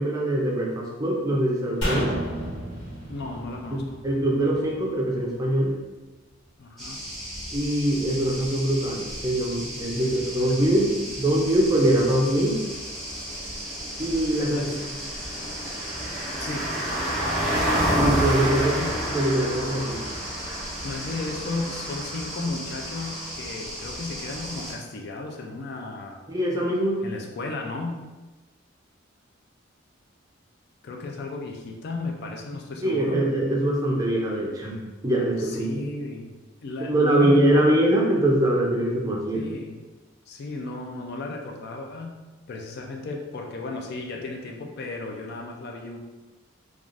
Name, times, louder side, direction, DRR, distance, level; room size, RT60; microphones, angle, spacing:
voice 1, 0.0-2.1 3.7-5.7 7.5-10.9 11.2-12.6 14.0-14.7 17.9-18.7 19.1-20.0 26.3-27.0 32.8-35.7 36.9-39.4, right 1 dB, 20° right, -3 dB, 0.5 m, -23 dB
sound 1, 1.8-5.1 5.4-5.5, equal, 75° left, 1.3 m, -31 dB
voice 2, 3.1-4.0 6.6-7.0 9.9-11.2 14.5-14.8 16.4-16.7 18.5-19.0 20.8-26.2 27.0-28.0 30.8-33.3 35.4-36.3 36.6-37.7 39.3-39.8 40.3-42.2 42.5-46.0, left 3 dB, 55° left, 2 dB, 0.4 m, -34 dB
sound 2, 6.8-24.7, equal, ahead, 0.9 m, -31 dB
3.2 x 2.4 x 2.5 m, 1.2 s
head